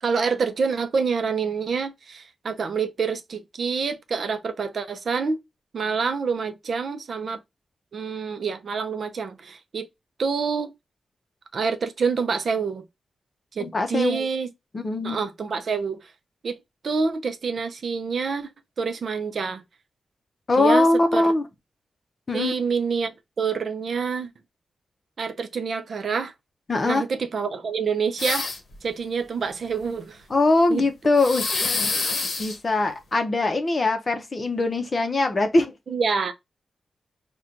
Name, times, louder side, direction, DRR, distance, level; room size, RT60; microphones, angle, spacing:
voice 1, 0.0-5.4 5.7-7.4 7.9-9.9 10.2-10.7 11.5-12.9 13.5-14.5 15.0-16.0 16.4-16.6 16.8-18.5 18.8-19.6 20.6-20.9 21.1-21.3 22.3-24.3 25.2-26.3 26.8-28.5 28.8-30.2 30.7-30.8 35.9-36.3, right 5 dB, 60° right, 0.5 m, -27 dB
voice 2, 13.6-14.3 14.7-15.2 20.5-21.4 22.3-22.5 26.7-27.0 30.3-31.5 32.4-35.7, left 2 dB, 35° left, 0.6 m, -22 dB
sound 1, 28.2-28.8 31.2-32.6, left 3 dB, 60° left, 0.8 m, -26 dB
5.9 x 2.2 x 2.5 m
wide cardioid pair, 165°, 0 cm